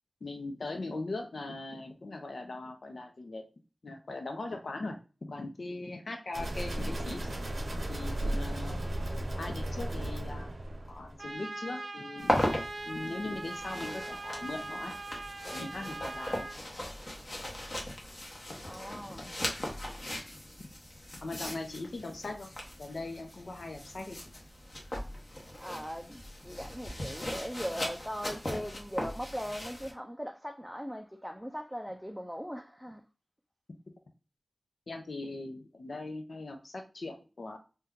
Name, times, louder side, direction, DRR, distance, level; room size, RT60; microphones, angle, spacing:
voice 1, 0.2-3.4 3.8-5.0 5.3-7.4 7.9-8.8 9.4-10.5 10.9-12.3 12.9-14.9 15.5-16.4 19.1-19.3 20.6-20.7 21.2-22.5 22.8-24.2 34.9-37.6, left 2 dB, 80° left, 0.6 m, -40 dB
sound 1, 6.3-11.2, right 1 dB, 90° right, 0.9 m, -35 dB
Trumpet, 11.2-16.6, right 2 dB, 65° right, 0.4 m, -41 dB
sound 2, 12.2-29.9, left 1 dB, 55° left, 1.0 m, -38 dB
voice 2, 18.6-19.2 25.6-33.0, equal, ahead, 0.4 m, -39 dB
2.7 x 2.2 x 3.6 m
wide cardioid pair, 65°, 0 cm